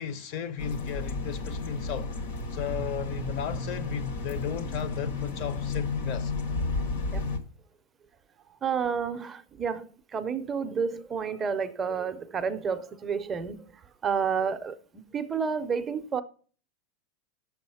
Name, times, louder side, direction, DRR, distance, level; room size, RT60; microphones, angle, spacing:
voice 1, 0.0-2.1 2.5-6.3, left 8 dB, 45° left, 0.6 m, -34 dB
sound 1, 0.6-7.4, left 3 dB, 80° left, 1.5 m, -32 dB
voice 2, 8.6-13.6 14.0-16.2, right 6 dB, 15° right, 0.5 m, -30 dB
9.3 x 7.0 x 5.6 m
supercardioid pair, 165°, 0 cm